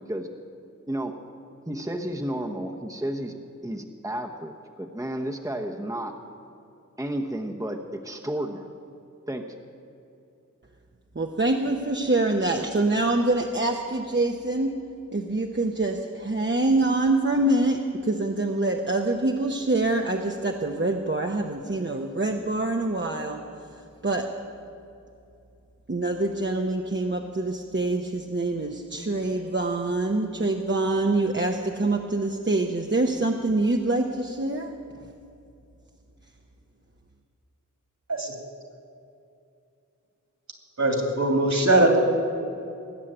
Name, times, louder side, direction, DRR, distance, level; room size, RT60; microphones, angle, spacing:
voice 1, 1.7-6.2 7.0-8.7 9.3-9.6, right 1 dB, 10° right, 2 dB, 1.0 m, -32 dB
voice 2, 11.1-14.7 15.1-23.4 24.0-24.3 25.9-34.8, right 2 dB, 35° right, 2 dB, 0.9 m, -25 dB
voice 3, 40.8-42.0, right 2 dB, 60° right, 2 dB, 2.7 m, -21 dB
19.5 x 7.6 x 8.7 m, 2.6 s
wide cardioid pair, 50°, 31 cm